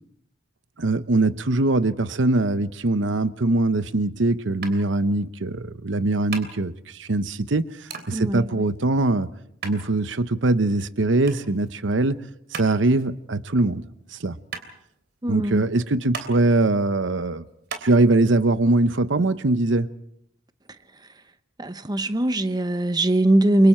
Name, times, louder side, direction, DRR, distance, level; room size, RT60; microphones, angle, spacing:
voice 1, 0.8-9.3 9.6-12.2 12.5-13.8 14.1-14.4 15.3-17.4 17.8-19.9, right 2 dB, 75° right, 0.9 m, -22 dB
sound 1, 4.6-17.9, right 5 dB, 60° right, 3.2 m, -40 dB
voice 2, 15.2-15.6 21.6-23.7, right 1 dB, 20° right, 0.8 m, -21 dB
29.5 x 24.0 x 4.4 m
head